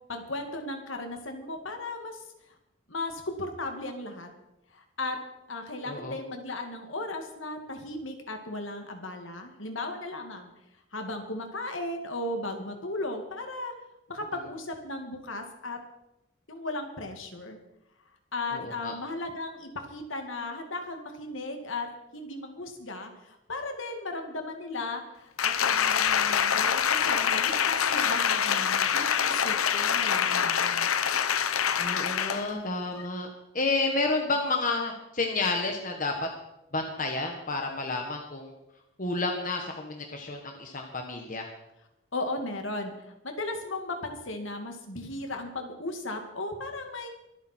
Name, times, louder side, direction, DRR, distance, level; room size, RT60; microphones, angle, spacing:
voice 1, 0.1-2.2 2.9-4.3 4.7-5.2 5.5-10.5 10.9-13.7 14.1-15.8 16.5-17.6 18.3-21.9 22.1-30.9 42.1-47.1, left 2 dB, 70° left, 4 dB, 2.3 m, -36 dB
voice 2, 5.8-6.2 18.5-18.9 31.8-33.3 33.5-36.1 36.7-38.5 39.0-41.5, left 3 dB, 40° left, 2 dB, 1.5 m, -30 dB
Applause, 25.4-32.5 32.9-33.1, left 8 dB, 90° left, 0.9 m, -25 dB
23.5 x 9.2 x 4.6 m, 0.87 s
head